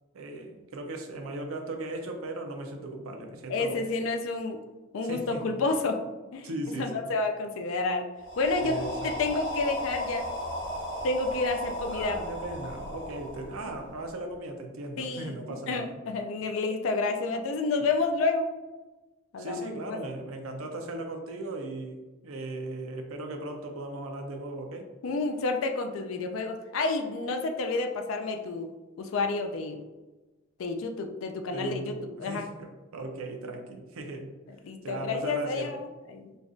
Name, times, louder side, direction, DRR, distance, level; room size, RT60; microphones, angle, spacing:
voice 1, 0.1-3.8 5.0-5.5 6.4-7.1 8.6-9.2 11.9-16.0 19.4-24.9 31.5-34.3 34.8-35.8, right 2 dB, 85° right, 4 dB, 0.6 m, -37 dB
voice 2, 3.5-4.6 4.9-6.0 6.3-8.0 8.4-10.3 11.0-12.2 13.6-13.7 15.0-15.3 15.7-18.5 19.3-19.6 25.0-29.8 30.6-32.5 34.6-36.3, left 3 dB, 75° left, 5 dB, 0.4 m, -30 dB
sound 1, 8.2-14.1, equal, 55° left, 1.2 m, -36 dB
5.2 x 2.4 x 2.5 m, 1.1 s
head